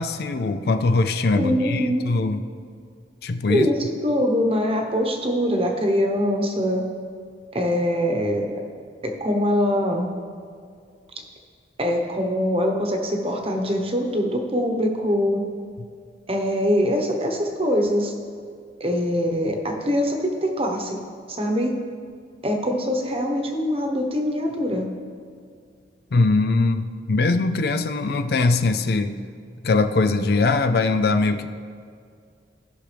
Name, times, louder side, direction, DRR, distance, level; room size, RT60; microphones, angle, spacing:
voice 1, 0.0-2.4 3.2-3.7 26.1-29.2 29.6-31.5, left 3 dB, 60° left, 9 dB, 0.4 m, -21 dB
voice 2, 1.3-2.1 3.5-6.8 7.5-8.6 9.0-10.1 11.8-15.4 16.3-18.1 18.8-21.0 21.3-21.7 22.4-24.9, equal, 30° right, 3 dB, 1.0 m, -23 dB
16.5 x 6.1 x 3.4 m, 2.2 s
head